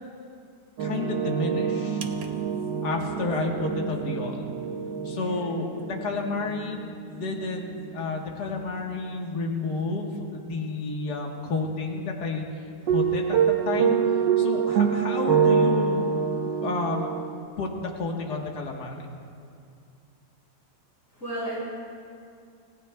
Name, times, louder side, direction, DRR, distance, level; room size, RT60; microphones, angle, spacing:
voice 1, 0.8-2.1 2.8-4.6 5.0-13.4 13.7-16.1 16.6-17.1 17.6-19.1, left 3 dB, 65° left, 0 dB, 2.0 m, -31 dB
sound 1, 0.8-8.9 12.9-17.4, right 7 dB, 80° right, 1.5 m, -26 dB
voice 2, 5.1-5.5 21.1-21.6, right 1 dB, 45° left, -8 dB, 4.5 m, -34 dB
29.0 x 16.5 x 2.3 m, 2.3 s
omnidirectional pair, 1.9 m